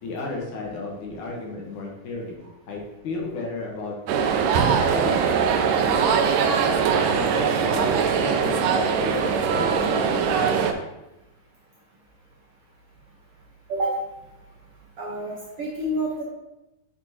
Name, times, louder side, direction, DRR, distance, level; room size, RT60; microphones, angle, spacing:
voice 1, 0.0-4.0 4.5-5.3 5.6-6.1 7.1-7.9 8.2-10.7, left 3 dB, 70° left, -1 dB, 2.5 m, -33 dB
sound 1, 4.1-10.7, right 6 dB, 90° right, 2.3 m, -21 dB
voice 2, 15.0-16.2, right 1 dB, 60° right, -4 dB, 1.7 m, -28 dB
7.0 x 6.9 x 2.9 m, 0.95 s
omnidirectional pair, 3.8 m